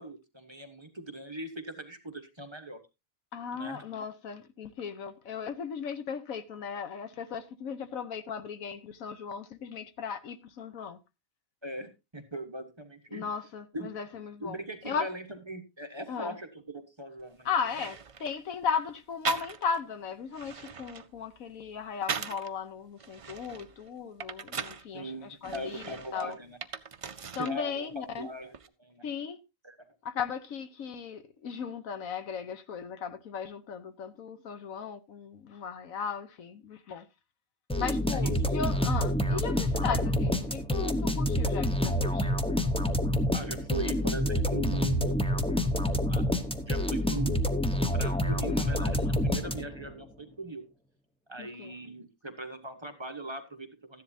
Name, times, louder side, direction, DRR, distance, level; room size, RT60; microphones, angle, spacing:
voice 1, 0.0-2.8 3.5-3.9 11.6-13.2 13.7-13.9 14.4-17.5 24.9-26.6 27.4-27.8 28.2-29.1 29.6-29.9 38.1-38.4 43.3-45.2 46.1-46.2 46.7-47.4 47.9-50.6 51.3-54.0, right 2 dB, 20° right, 1.2 m, -40 dB
voice 2, 3.3-11.0 13.1-15.1 16.1-16.4 17.4-26.4 27.4-28.3 29.0-29.4 30.0-37.1 37.7-42.3 51.4-51.8, left 6 dB, 85° left, 1.3 m, -36 dB
sound 1, 17.2-17.3 17.6-18.4 19.2-19.9 20.2-22.5 23.0-24.9 25.4-27.6 27.9-28.7, right 6 dB, 55° right, 0.3 m, -39 dB
sound 2, 37.7-49.9, equal, 5° left, 0.6 m, -28 dB
14.0 x 10.5 x 2.7 m
omnidirectional pair, 1.4 m